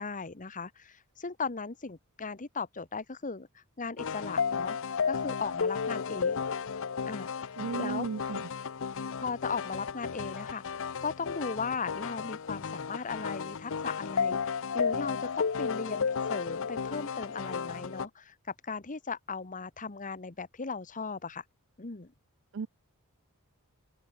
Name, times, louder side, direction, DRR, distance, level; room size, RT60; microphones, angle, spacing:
voice 1, 0.0-4.8 5.1-6.5 7.1-7.5 7.8-8.1 9.2-21.4 21.8-22.1, left 4 dB, 35° left, 1.2 m, -37 dB
sound 1, 4.0-18.1, left 6 dB, 65° left, 0.7 m, -33 dB
voice 2, 7.6-8.4 22.5-22.7, right 5 dB, 60° right, 0.4 m, -34 dB
head